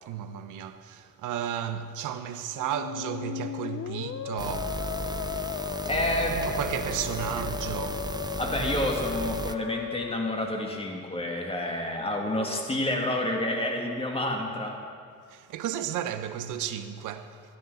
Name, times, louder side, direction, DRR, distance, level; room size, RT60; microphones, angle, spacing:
voice 1, 0.0-4.9 6.5-8.1 15.3-17.4, right 10 dB, 90° right, 0.8 m, -33 dB
Musical instrument, 2.5-11.3, left 11 dB, 55° left, 0.6 m, -36 dB
sound 1, 4.4-9.5, right 3 dB, 15° right, 0.5 m, -35 dB
voice 2, 5.9-6.5 7.3-7.4 8.4-14.8, left 1 dB, 20° left, 2.2 m, -29 dB
16.0 x 12.0 x 3.9 m
cardioid pair, 90°, 30 cm